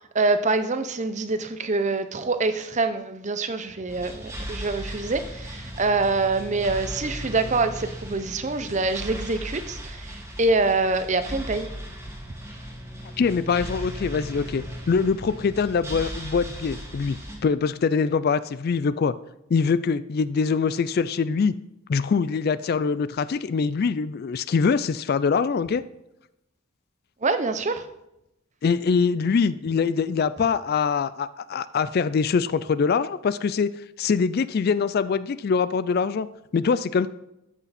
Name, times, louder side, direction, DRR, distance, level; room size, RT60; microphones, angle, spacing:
voice 1, 0.1-11.7 27.2-27.9, right 3 dB, 35° right, 10 dB, 0.7 m, -25 dB
sound 1, 3.9-17.4, equal, 10° right, 2.0 m, -37 dB
voice 2, 13.2-19.1 19.5-21.5 21.9-25.8 28.6-36.3 36.5-37.1, left 5 dB, 45° left, 15 dB, 0.3 m, -23 dB
13.5 x 8.3 x 4.2 m, 0.88 s
head